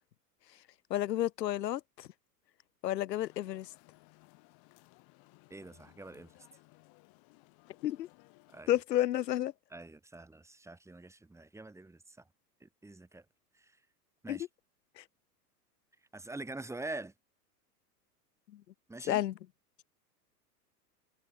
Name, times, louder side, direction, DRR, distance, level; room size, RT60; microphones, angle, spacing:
voice 1, 0.9-2.1 2.8-3.7 7.8-8.1 8.7-9.5 14.3-14.4 15.0-15.1 18.5-18.6 19.1-19.3, left 13 dB, 85° left, 0.8 m, -31 dB
sound 1, 3.2-8.6, left 28 dB, 50° left, 7.2 m, -62 dB
voice 2, 5.5-6.3 8.5-8.8 9.7-12.2 12.6-13.2 14.2-14.5 16.1-17.1 18.9-19.2, right 2 dB, 5° right, 1.7 m, -45 dB
hypercardioid pair, 105°, 48 cm